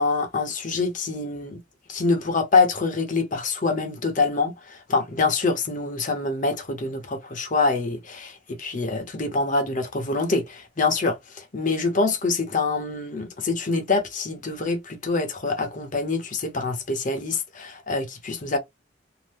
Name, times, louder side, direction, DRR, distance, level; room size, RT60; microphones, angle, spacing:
voice 1, 0.0-1.6 1.9-18.6, left 3 dB, 45° left, 0.8 m, -25 dB
2.7 x 2.1 x 3.4 m
head